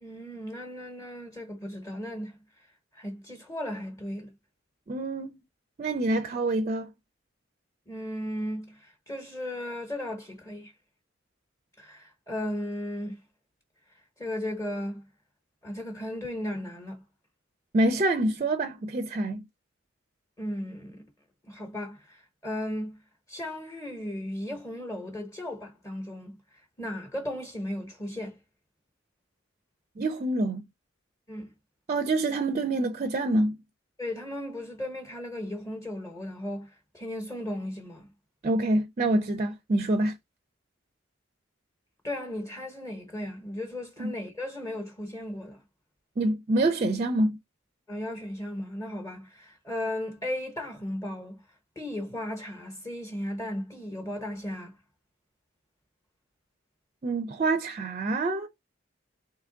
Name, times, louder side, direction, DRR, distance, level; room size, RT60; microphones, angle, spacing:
voice 1, 0.0-2.4 2.9-4.3 7.9-10.7 11.8-13.2 14.2-15.1 15.6-17.0 20.4-21.1 21.4-23.0 23.3-28.4 31.3-31.5 34.0-38.1 42.0-45.6 47.9-51.4 51.8-54.7, left 1 dB, 15° left, 0.8 m, -36 dB
voice 2, 4.9-5.4 5.8-6.9 17.7-19.4 30.0-30.6 31.9-33.6 38.4-40.1 44.0-44.1 46.2-47.4 57.0-58.5, right 2 dB, 35° right, 0.4 m, -26 dB
3.4 x 2.8 x 3.7 m
head